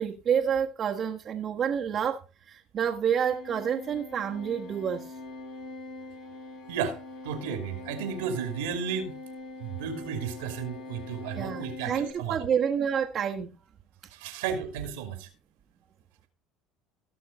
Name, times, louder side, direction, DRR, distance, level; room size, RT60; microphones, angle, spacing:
voice 1, 0.0-2.2 2.5-5.1 11.3-13.5, right 8 dB, 45° right, 0 dB, 1.5 m, -28 dB
sound 1, 3.2-12.1, left 2 dB, 60° left, 3.9 m, -43 dB
voice 2, 7.2-9.1 9.6-12.5 14.1-15.3, right 7 dB, 85° right, 7 dB, 2.6 m, -33 dB
17.0 x 6.4 x 4.0 m, 0.31 s
supercardioid pair, 85°, 0 cm